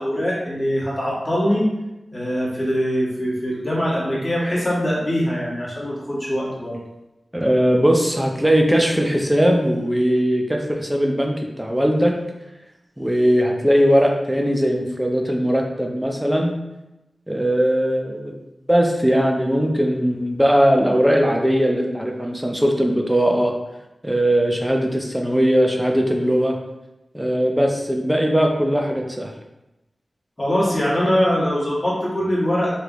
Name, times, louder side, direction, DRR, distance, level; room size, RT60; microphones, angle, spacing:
voice 1, 0.0-1.7 2.1-6.8 30.4-32.8, equal, 20° left, -7 dB, 1.2 m, -22 dB
voice 2, 7.3-12.1 13.0-16.5 17.3-18.4 18.7-23.5 24.0-26.6 27.1-29.3, equal, 10° right, 1 dB, 0.5 m, -19 dB
3.2 x 2.8 x 2.5 m, 0.97 s
cardioid pair, 55°, 0 cm